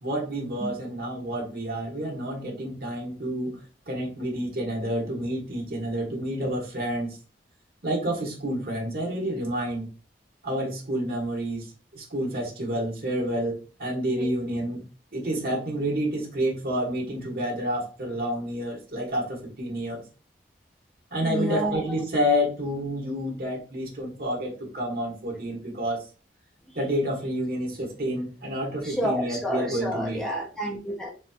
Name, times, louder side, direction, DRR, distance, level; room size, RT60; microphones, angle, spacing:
voice 1, 0.0-3.6 3.9-7.2 7.8-9.9 10.4-14.8 15.1-20.0 21.1-26.0 26.7-30.2, equal, 55° right, 0 dB, 1.5 m, -29 dB
voice 2, 21.2-22.0 26.7-26.8 28.8-31.1, equal, 5° left, -3 dB, 0.6 m, -30 dB
4.2 x 3.0 x 2.3 m, 0.36 s
head